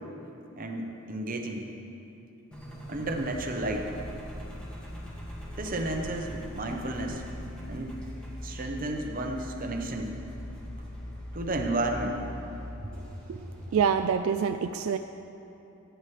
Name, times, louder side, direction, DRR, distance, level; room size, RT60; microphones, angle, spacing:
voice 1, 0.5-1.6 2.9-3.9 5.6-7.3 7.7-8.0 8.4-10.1 11.3-12.2, right 2 dB, 40° right, 3 dB, 0.9 m, -32 dB
Engine, 2.5-14.1, equal, 5° left, 1.6 m, -41 dB
voice 2, 13.7-15.0, right 7 dB, 75° right, 8 dB, 0.3 m, -26 dB
15.5 x 9.1 x 3.3 m, 2.9 s
head